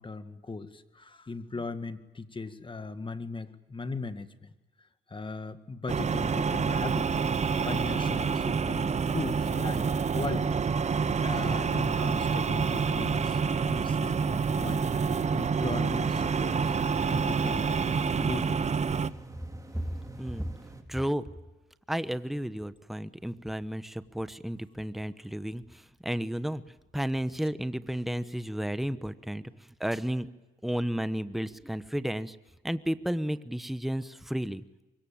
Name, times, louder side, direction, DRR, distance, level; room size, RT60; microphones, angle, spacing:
voice 1, 0.0-4.5 5.1-7.2 7.6-10.6 11.2-17.9 18.2-18.6, left 3 dB, 25° left, 10 dB, 1.9 m, -38 dB
sound 1, 5.9-19.1, right 5 dB, 35° right, 1.0 m, -28 dB
sound 2, 10.7-20.8, right 3 dB, 15° right, 3.6 m, -47 dB
voice 2, 20.2-20.5 20.9-21.3 21.9-26.6 26.9-29.5 29.8-30.3 30.6-32.4 32.6-34.6, equal, ahead, 13 dB, 1.1 m, -32 dB
24.0 x 22.5 x 8.9 m, 1.1 s
cardioid pair, 90°, 20 cm